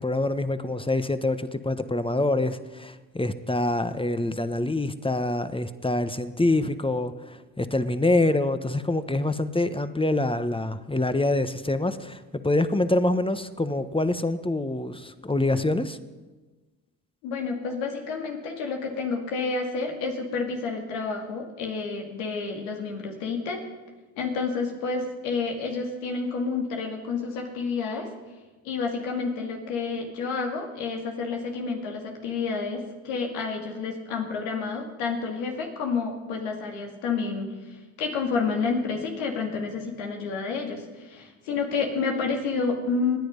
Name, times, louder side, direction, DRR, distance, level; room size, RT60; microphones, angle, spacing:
voice 1, 0.0-16.0, left 2 dB, 10° left, 11 dB, 1.2 m, -26 dB
voice 2, 17.2-23.6 24.2-28.1 28.6-43.2, left 4 dB, 90° left, 2 dB, 2.3 m, -29 dB
26.0 x 9.9 x 5.4 m, 1.2 s
hypercardioid pair, 45°, 45 cm